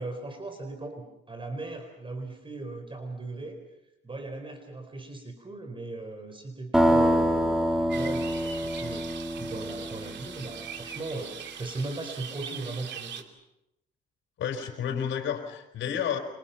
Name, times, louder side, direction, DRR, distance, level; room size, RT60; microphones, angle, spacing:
voice 1, 0.0-3.6 4.0-9.0 9.4-13.3, right 2 dB, 25° right, 6 dB, 4.6 m, -38 dB
sound 1, 6.7-10.5, equal, 5° right, 3.1 m, -26 dB
sound 2, 7.9-13.2, right 7 dB, 65° right, 2.8 m, -41 dB
voice 2, 14.4-16.2, left 8 dB, 75° left, 5 dB, 4.6 m, -31 dB
30.0 x 26.0 x 5.9 m, 0.86 s
cardioid pair, 90°, 20 cm